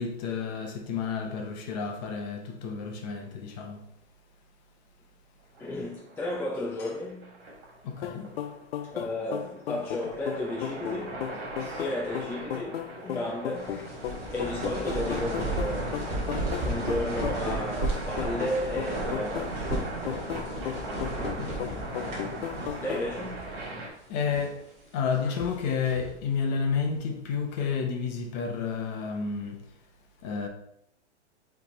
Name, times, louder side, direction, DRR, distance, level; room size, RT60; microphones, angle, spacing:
voice 1, 0.0-3.8 7.8-8.3 21.2-22.1 24.1-24.6 24.9-29.6 30.2-30.5, left 6 dB, 35° left, 1.0 m, -31 dB
sound 1, 5.5-23.9, right 2 dB, 45° right, 2.2 m, -39 dB
voice 2, 5.6-7.4 8.9-14.0 14.3-19.8 22.8-23.5 25.2-25.3, left 1 dB, 5° left, 0.6 m, -34 dB
sound 2, 8.0-23.1, left 11 dB, 60° left, 0.4 m, -36 dB
sound 3, 13.6-23.1 23.4-23.5 24.1-24.6 25.1-26.2, right 2 dB, 20° right, 1.6 m, -34 dB
8.4 x 3.5 x 3.2 m
hypercardioid pair, 150°, 35 cm